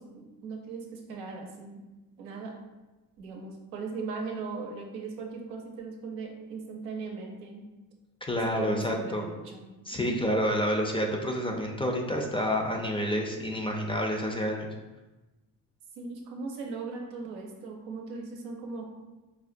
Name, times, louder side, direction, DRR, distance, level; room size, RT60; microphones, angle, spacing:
voice 1, 0.0-1.8 2.2-2.5 3.2-7.7 8.4-9.6 10.0-10.2 16.0-19.0, right 4 dB, 90° right, 1 dB, 0.7 m, -39 dB
voice 2, 8.3-9.2 9.9-14.7, equal, 15° left, 1 dB, 0.4 m, -28 dB
4.5 x 2.1 x 2.5 m, 1.1 s
hypercardioid pair, 60°, 45 cm